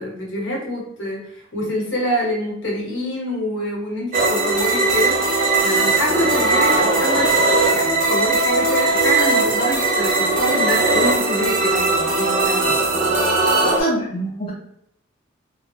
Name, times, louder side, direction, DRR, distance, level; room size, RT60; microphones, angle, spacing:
voice 1, 0.0-12.8, equal, 65° left, -3 dB, 1.2 m, -26 dB
sound 1, 4.1-13.8, right 3 dB, 45° right, 0.8 m, -18 dB
voice 2, 13.6-14.5, right 1 dB, 25° left, -6 dB, 0.6 m, -24 dB
3.8 x 2.0 x 3.0 m, 0.75 s
head